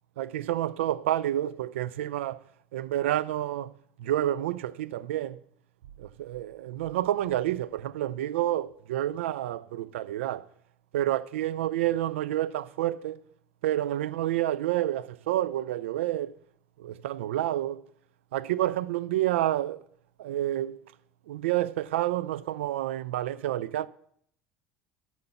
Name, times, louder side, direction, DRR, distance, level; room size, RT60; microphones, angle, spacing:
voice 1, 0.2-2.4 2.7-5.4 6.0-10.5 10.9-13.2 13.6-16.3 16.8-17.9 18.3-19.8 20.2-20.8 21.3-23.9, right 13 dB, 65° right, 0.4 m, -29 dB
10.0 x 6.1 x 6.9 m
figure-of-eight pair, 65°, 7 cm